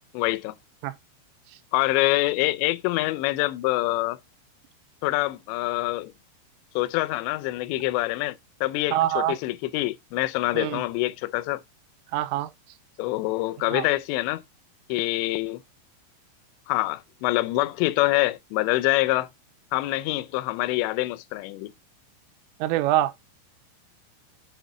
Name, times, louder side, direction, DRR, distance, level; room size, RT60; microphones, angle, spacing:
voice 1, 0.1-0.5 1.7-4.2 5.0-6.1 6.8-8.4 8.6-11.6 13.0-14.4 14.9-15.6 16.7-19.3 19.7-21.7, left 19 dB, 85° left, 2.5 m, -25 dB
voice 2, 8.9-9.4 10.5-10.8 12.1-12.5 13.7-13.9 22.6-23.1, right 13 dB, 85° right, 3.2 m, -24 dB
8.0 x 4.1 x 3.8 m
omnidirectional pair, 5.8 m